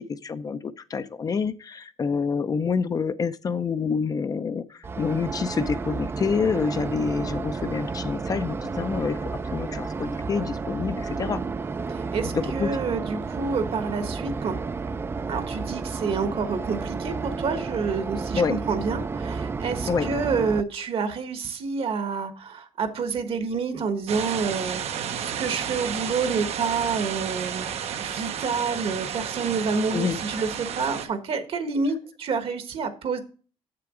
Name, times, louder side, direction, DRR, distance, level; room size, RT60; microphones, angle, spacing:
voice 1, 0.0-9.2 9.5-11.4 12.3-12.7 18.3-18.6 19.9-20.1 29.9-30.2, left 5 dB, 35° left, 12 dB, 0.5 m, -27 dB
sound 1, 4.8-20.6, right 4 dB, 20° right, 0.4 m, -31 dB
voice 2, 11.9-14.6 15.3-27.7 28.0-33.2, right 5 dB, 60° right, 9 dB, 1.2 m, -28 dB
sound 2, 24.1-31.1, right 8 dB, 75° right, 0.8 m, -32 dB
7.8 x 6.8 x 4.9 m, 0.40 s
cardioid pair, 145°, 11 cm